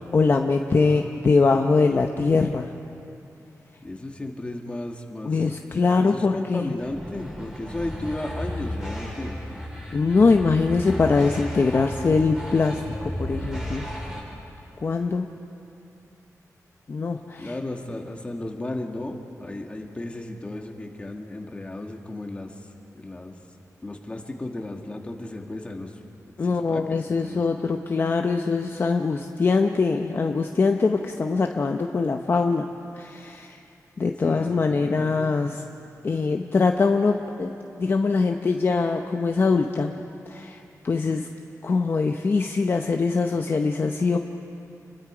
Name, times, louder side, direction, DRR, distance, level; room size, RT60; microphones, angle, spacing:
voice 1, 0.1-2.7 5.2-6.7 9.9-13.8 14.8-15.3 16.9-17.5 26.4-32.7 32.9-33.6 34.0-35.6 36.0-37.5 37.8-39.9 40.3-41.3 41.6-44.2, left 4 dB, 40° left, 4 dB, 0.7 m, -22 dB
voice 2, 0.7-1.2 3.8-5.4 6.0-9.4 17.4-22.5 22.9-23.3 23.8-26.0 26.5-27.4 34.2-35.4, left 1 dB, 20° left, 2 dB, 1.7 m, -34 dB
sound 1, 6.8-14.2, equal, 10° right, 5.2 m, -34 dB
29.5 x 22.0 x 5.0 m, 2.7 s
wide cardioid pair, 160°, 6 cm